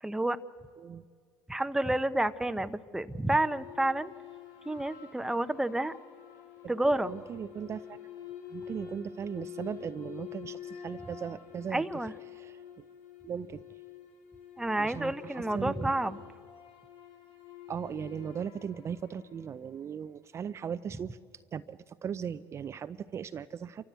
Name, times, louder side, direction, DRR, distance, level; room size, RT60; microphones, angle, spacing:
voice 1, 0.0-0.4 1.5-4.1 4.7-6.0 6.7-7.1 11.7-12.1 14.6-16.2, right 1 dB, 5° right, 11 dB, 0.8 m, -29 dB
voice 2, 0.8-1.1 6.6-6.7 7.1-8.0 8.5-11.8 12.3-12.8 13.2-13.6 14.8-15.9 17.7-21.2 21.5-23.8, right 7 dB, 35° right, 11 dB, 0.5 m, -38 dB
sound 1, 3.3-19.9, left 9 dB, 80° left, 2.3 m, -48 dB
28.0 x 14.0 x 8.1 m, 2.1 s
supercardioid pair, 90°, 8 cm